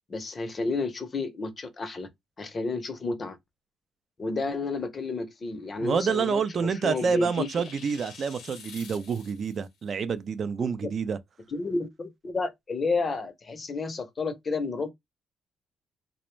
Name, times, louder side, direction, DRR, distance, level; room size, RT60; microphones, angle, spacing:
voice 1, 0.1-2.1 2.4-3.4 4.2-7.5 10.6-10.9 11.5-14.9, left 3 dB, 40° left, 0.6 m, -31 dB
sound 1, 5.5-9.7, left 6 dB, 80° left, 0.7 m, -49 dB
voice 2, 5.8-11.2, right 6 dB, 50° right, 0.4 m, -28 dB
2.4 x 2.1 x 3.0 m
cardioid pair, 90°, 0 cm